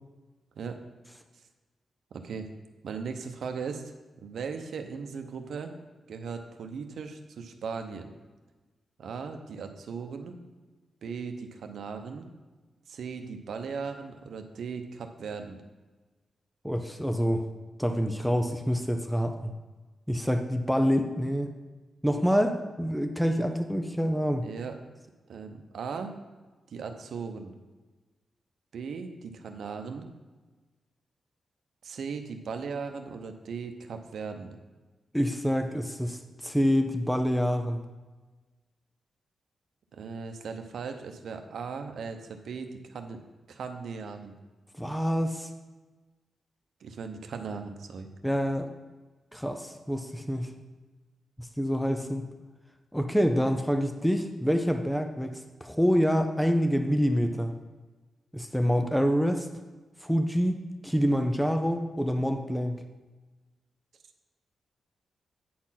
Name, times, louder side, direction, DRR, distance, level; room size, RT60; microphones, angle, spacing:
voice 1, 2.1-2.5 2.8-3.9 4.2-5.7 6.1-8.1 9.0-10.4 11.0-12.3 12.9-15.6 24.4-24.8 25.3-26.1 26.7-27.6 28.7-30.1 31.8-34.6 39.9-43.2 43.5-44.3 46.8-48.1, right 5 dB, 70° right, 6 dB, 0.8 m, -38 dB
voice 2, 16.6-17.5 17.8-19.5 20.1-21.5 22.0-24.5 35.1-37.8 44.8-45.5 48.2-48.7 49.3-50.5 51.4-52.2 52.9-57.5 58.3-59.5 60.0-62.8, equal, ahead, 6 dB, 0.4 m, -26 dB
9.4 x 4.3 x 5.8 m, 1.2 s
wide cardioid pair, 150°, 0 cm